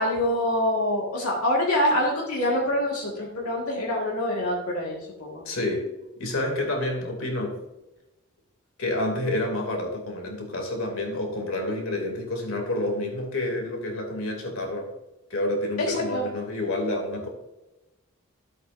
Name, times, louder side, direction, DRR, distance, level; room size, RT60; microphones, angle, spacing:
voice 1, 0.0-5.4 15.8-16.3, left 1 dB, 90° left, -3 dB, 1.9 m, -25 dB
voice 2, 5.4-5.9 6.2-7.6 8.8-14.9 15.3-17.3, left 1 dB, 70° left, 2 dB, 2.7 m, -29 dB
14.0 x 8.1 x 2.6 m, 0.98 s
head